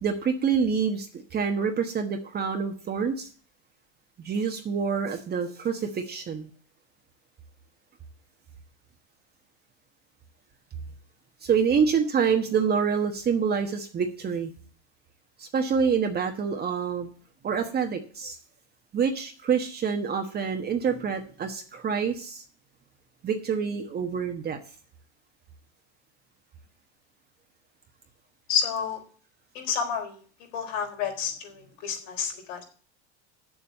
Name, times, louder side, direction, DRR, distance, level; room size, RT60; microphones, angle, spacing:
voice 1, 0.0-3.3 4.2-6.5 11.4-14.5 15.4-17.1 17.4-18.4 18.9-22.4 23.2-24.6, right 6 dB, 25° right, 4 dB, 1.2 m, -27 dB
voice 2, 28.5-29.0 29.5-30.2 30.5-32.6, left 7 dB, 70° left, 3 dB, 3.9 m, -30 dB
7.3 x 7.2 x 8.3 m, 0.42 s
supercardioid pair, 120°, 35 cm